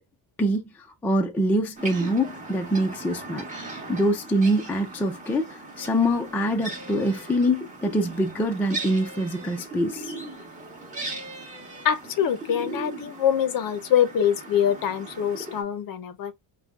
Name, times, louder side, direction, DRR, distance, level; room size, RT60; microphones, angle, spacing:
voice 1, 1.0-3.5 3.9-10.1, equal, 5° left, 0.3 m, -24 dB
sound 1, 1.8-15.6, right 2 dB, 15° right, 1.1 m, -38 dB
voice 2, 11.8-16.3, left 9 dB, 45° left, 0.6 m, -24 dB
5.0 x 2.3 x 2.3 m
cardioid pair, 160°, 49 cm